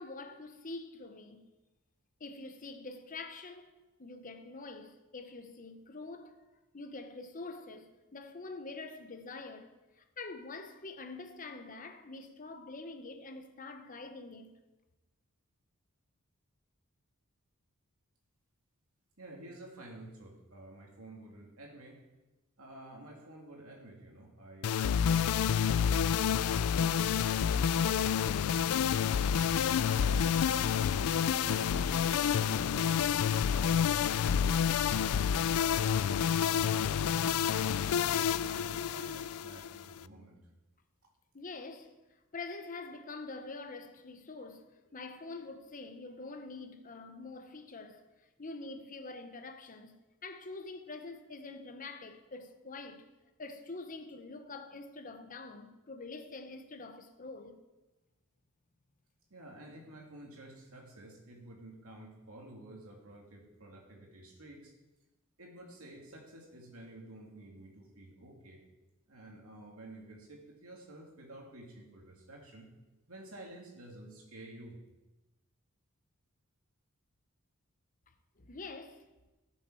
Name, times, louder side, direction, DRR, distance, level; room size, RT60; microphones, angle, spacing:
voice 1, 0.0-1.5 2.2-3.7 4.0-6.4 6.7-14.6 41.3-42.0 42.3-48.1 48.4-53.1 53.4-57.6 78.4-79.1, left 3 dB, 40° left, 0.9 m, -45 dB
voice 2, 19.2-22.0 22.6-30.4 31.1-35.1 35.5-38.0 38.5-40.4 59.3-64.7 65.4-68.6 69.1-72.7 73.1-74.8, right 1 dB, 75° right, 2.5 m, -51 dB
sound 1, 24.6-40.0, left 8 dB, 85° left, 0.4 m, -29 dB
16.0 x 7.2 x 4.6 m
head